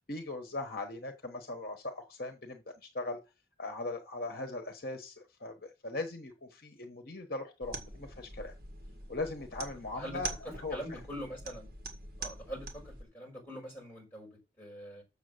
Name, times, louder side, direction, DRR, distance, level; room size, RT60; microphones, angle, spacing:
voice 1, 0.1-3.2 3.6-8.5 9.1-10.3 10.6-11.0, left 2 dB, 50° left, 1.1 m, -39 dB
sound 1, 7.6-13.0, right 3 dB, 50° right, 1.9 m, -44 dB
voice 2, 9.9-11.7 12.2-14.3 14.6-15.0, equal, 10° left, 5.4 m, -43 dB
7.3 x 6.7 x 6.6 m
head